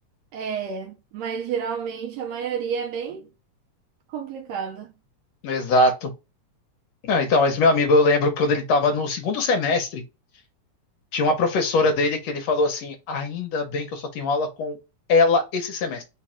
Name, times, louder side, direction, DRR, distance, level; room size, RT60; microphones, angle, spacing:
voice 1, 0.3-3.3 4.1-4.9, right 7 dB, 75° right, 1.7 m, -30 dB
voice 2, 5.4-6.1 7.0-10.0 11.1-14.8 15.1-16.0, left 3 dB, 70° left, 1.8 m, -21 dB
4.8 x 2.4 x 4.2 m
omnidirectional pair, 3.5 m